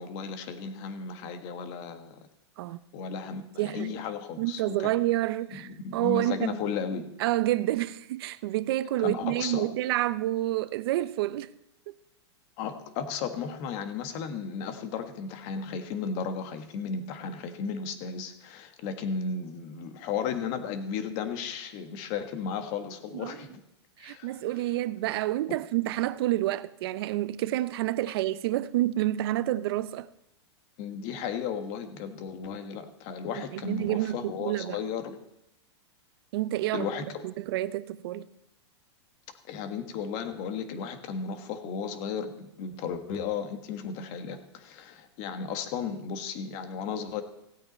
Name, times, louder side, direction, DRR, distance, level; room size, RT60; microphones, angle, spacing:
voice 1, 0.0-2.3 2.9-4.9 5.5-7.1 9.0-9.7 12.6-23.6 24.0-24.3 30.8-35.2 36.7-37.1 39.5-47.2, left 6 dB, 45° left, 1.6 m, -34 dB
voice 2, 3.6-4.0 4.4-6.6 7.2-11.5 11.9-12.0 23.1-23.4 24.0-30.1 33.4-34.8 36.3-36.9 37.2-38.3, right 15 dB, 60° right, 0.7 m, -29 dB
17.0 x 8.8 x 4.3 m
hypercardioid pair, 135°, 15 cm